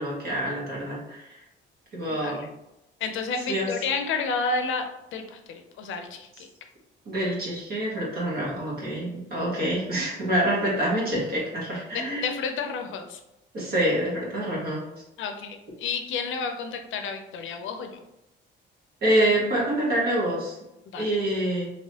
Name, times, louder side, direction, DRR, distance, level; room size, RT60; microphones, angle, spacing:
voice 1, 0.0-1.4 1.9-2.5 3.5-3.7 7.0-12.3 13.5-14.8 19.0-20.6 21.0-21.7, right 1 dB, 50° right, -5 dB, 1.4 m, -26 dB
voice 2, 2.1-2.5 3.0-5.4 5.8-6.5 11.9-13.2 15.2-18.0 20.9-21.2, left 4 dB, 70° left, 5 dB, 0.5 m, -31 dB
3.1 x 2.9 x 2.9 m, 0.91 s
cardioid pair, 165°, 21 cm